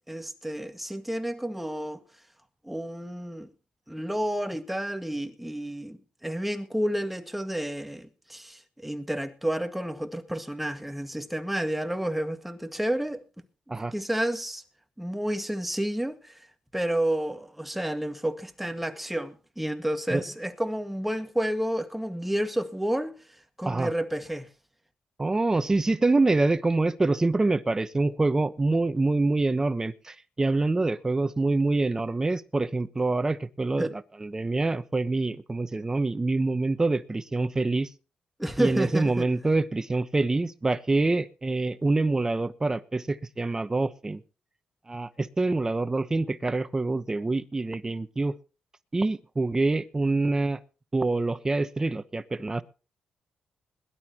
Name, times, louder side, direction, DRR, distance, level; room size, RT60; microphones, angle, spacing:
voice 1, 0.0-2.0 2.6-3.5 3.9-13.2 13.9-14.6 15.0-16.5 16.7-23.1 23.6-24.5 33.8-33.9 38.4-39.3, right 1 dB, 5° right, 1.8 m, -30 dB
voice 2, 25.2-33.9 34.2-37.9 38.6-44.2 44.9-48.3 48.9-50.6 50.9-52.6, right 3 dB, 20° right, 1.0 m, -26 dB
21.5 x 12.0 x 3.0 m
cardioid pair, 90°, 3 cm